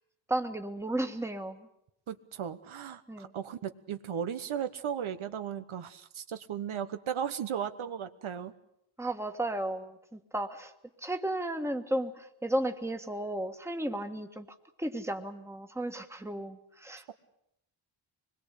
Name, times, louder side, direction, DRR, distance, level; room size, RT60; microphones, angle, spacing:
voice 1, 0.3-1.7 3.1-3.3 9.0-10.7 11.0-14.5 14.8-17.1, right 1 dB, 5° right, 5 dB, 1.6 m, -34 dB
voice 2, 2.1-8.5, right 8 dB, 75° right, 10 dB, 1.2 m, -36 dB
25.0 x 21.5 x 8.3 m, 0.78 s
wide cardioid pair, 135°, 49 cm